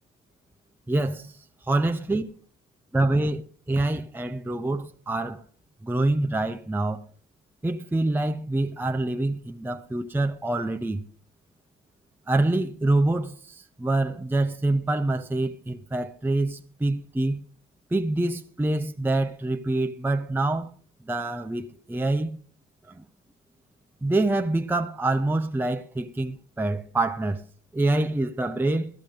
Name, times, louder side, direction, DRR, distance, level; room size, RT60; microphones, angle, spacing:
voice 1, 0.9-1.3 1.7-2.3 2.9-3.4 3.7-5.4 5.8-7.0 7.6-11.0 12.3-17.4 17.9-20.7 21.1-22.4 23.0-23.1 24.0-27.4 27.7-28.9, right 2 dB, 5° right, 0.8 m, -26 dB
15.5 x 13.0 x 3.8 m
figure-of-eight pair, 45°, 34 cm